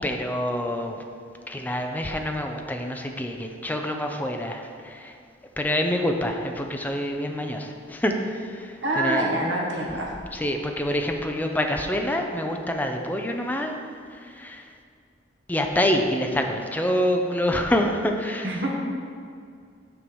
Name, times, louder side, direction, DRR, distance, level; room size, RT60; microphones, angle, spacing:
voice 1, 0.0-1.0 1.5-5.1 5.6-9.3 10.3-13.8 14.1-14.7 15.5-18.5, left 1 dB, 10° left, 3 dB, 0.6 m, -26 dB
voice 2, 8.8-10.1 18.4-18.7, right 1 dB, 75° right, -2 dB, 1.3 m, -26 dB
7.0 x 4.7 x 7.0 m, 2.3 s
head